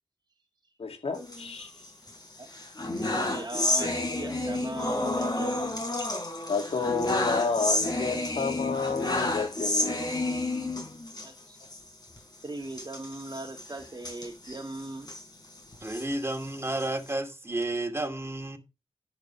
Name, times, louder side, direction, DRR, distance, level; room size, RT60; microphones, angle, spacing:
voice 1, 0.8-1.7 6.5-10.0, left 4 dB, 80° left, 2.1 m, -30 dB
sound 1, 1.2-2.1 2.5-11.3 11.6-11.8 12.0-12.2 12.7-15.2 15.7-17.1, left 2 dB, 45° left, 4.1 m, -30 dB
voice 2, 3.0-5.8 6.7-6.8 11.2-11.6 12.4-15.1, right 2 dB, 40° right, 2.0 m, -39 dB
voice 3, 15.8-18.6, right 2 dB, 25° right, 2.3 m, -31 dB
11.0 x 5.2 x 5.8 m
cardioid pair, 45°, 10 cm